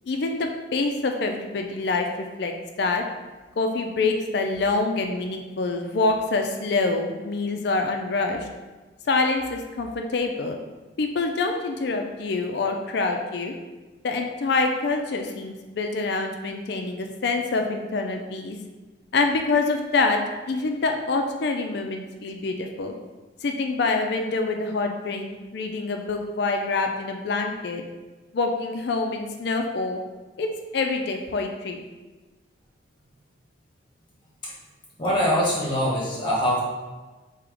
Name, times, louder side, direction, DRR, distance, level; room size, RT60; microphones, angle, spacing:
voice 1, 0.1-3.0 3.6-8.5 9.1-10.6 11.0-13.6 14.0-18.6 19.1-20.2 20.5-22.9 23.4-27.8 28.3-30.0 30.4-31.8, left 3 dB, 55° left, 4 dB, 0.4 m, -26 dB
voice 2, 35.0-36.6, equal, 25° left, -5 dB, 1.3 m, -23 dB
3.5 x 2.9 x 4.8 m, 1.2 s
head